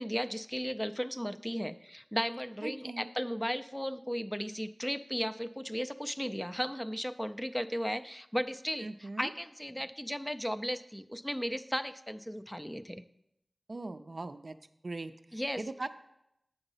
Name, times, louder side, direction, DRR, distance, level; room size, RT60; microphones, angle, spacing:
voice 1, 0.0-13.0 15.3-15.6, equal, 5° left, 10 dB, 0.3 m, -35 dB
voice 2, 2.6-3.1 8.8-9.3 13.7-14.6 14.8-15.9, right 2 dB, 65° right, 9 dB, 0.4 m, -40 dB
8.9 x 4.0 x 5.5 m, 0.82 s
wide cardioid pair, 50°, 0 cm